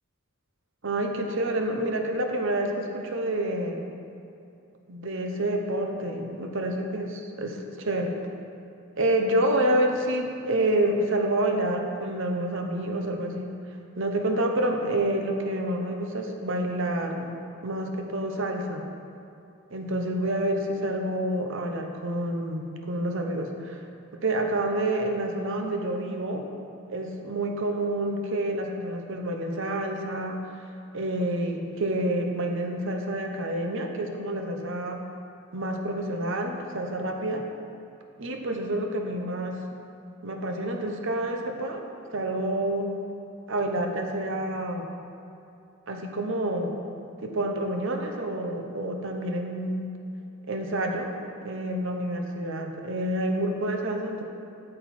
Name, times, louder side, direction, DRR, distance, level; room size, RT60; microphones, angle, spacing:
voice 1, 0.8-3.9 4.9-8.2 9.0-13.6 14.0-18.9 19.7-23.8 24.2-26.4 26.9-30.5 30.9-35.0 35.5-37.4 38.2-39.6 40.2-41.8 42.1-42.9 43.5-44.9 45.9-46.7 47.2-49.9 50.5-51.1 51.4-54.2, right 1 dB, 55° right, 3 dB, 0.9 m, -28 dB
8.9 x 7.7 x 4.3 m, 2.7 s
head